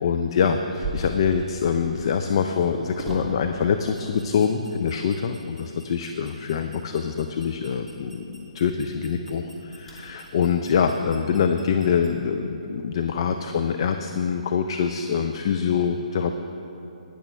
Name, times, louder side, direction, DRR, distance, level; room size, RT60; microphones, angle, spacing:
voice 1, 0.0-16.3, left 6 dB, 40° left, 6 dB, 0.5 m, -24 dB
sound 1, 0.7-13.0, right 2 dB, 5° left, 2.5 m, -41 dB
17.5 x 10.0 x 3.3 m, 2.9 s
figure-of-eight pair, 135°, 4 cm